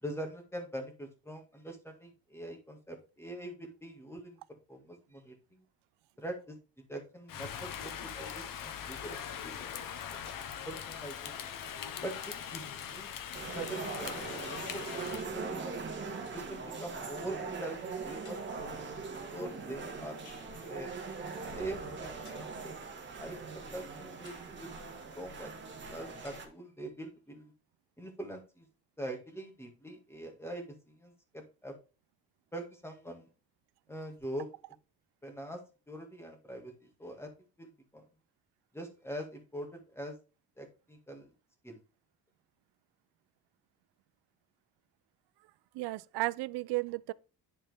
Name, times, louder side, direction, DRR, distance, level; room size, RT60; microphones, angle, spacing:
voice 1, 0.0-4.4 4.7-5.6 6.2-6.6 6.9-9.2 9.4-9.7 10.7-11.3 12.0-13.1 13.4-15.9 16.3-19.0 19.3-20.2 20.6-20.9 21.6-22.8 23.2-24.7 25.1-27.5 28.0-28.7 29.0-31.7 32.5-33.3 33.9-34.5 35.2-35.6 35.9-37.3 37.6-38.0 38.7-40.2 40.6-41.3 41.6-41.8, right 1 dB, 5° left, 1.9 m, -43 dB
Rain, 7.3-15.3, left 8 dB, 55° left, 1.0 m, -41 dB
sound 1, 8.3-8.7 9.8-10.6 11.8-12.7 14.3-14.6 15.8-15.9 16.1-16.5 17.5-17.6 18.2-18.8 20.3-20.6 22.2-22.6 23.3-23.4 24.2-24.6 25.3-25.4 26.2-26.6, left 4 dB, 80° left, 2.5 m, -57 dB
sound 2, 13.3-26.5, right 4 dB, 30° right, 1.6 m, -41 dB
voice 2, 45.7-47.1, right 20 dB, 80° right, 0.5 m, -34 dB
10.5 x 4.3 x 3.5 m
cardioid pair, 140°, 39 cm